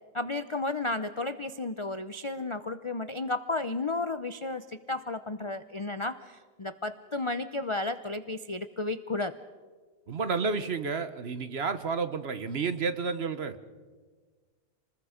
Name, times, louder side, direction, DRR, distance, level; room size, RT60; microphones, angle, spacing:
voice 1, 0.1-9.3, left 2 dB, 40° left, 11 dB, 0.4 m, -33 dB
voice 2, 10.1-13.6, right 5 dB, 50° right, 11 dB, 1.1 m, -31 dB
28.0 x 20.5 x 5.1 m, 1.5 s
omnidirectional pair, 1.5 m